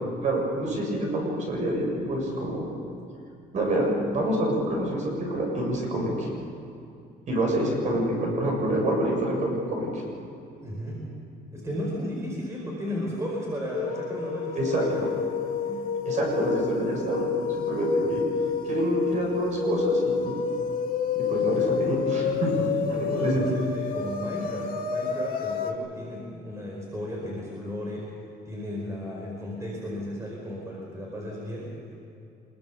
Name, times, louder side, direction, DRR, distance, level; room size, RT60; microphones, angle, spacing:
voice 1, 0.2-2.6 3.5-6.3 7.3-10.0 14.5-14.9 16.1-17.3 17.7-18.2 18.6-20.3 21.2-22.5 22.9-23.4, right 1 dB, 45° right, 0 dB, 7.4 m, -27 dB
voice 2, 10.5-11.0 11.5-15.0 15.6-15.9 18.1-18.3 22.5-28.1 28.4-31.9, equal, 15° right, -2 dB, 4.7 m, -34 dB
sound 1, 13.7-25.7, left 5 dB, 60° left, 2.2 m, -29 dB
25.5 x 21.5 x 7.0 m, 2.6 s
cardioid pair, 160°, 17 cm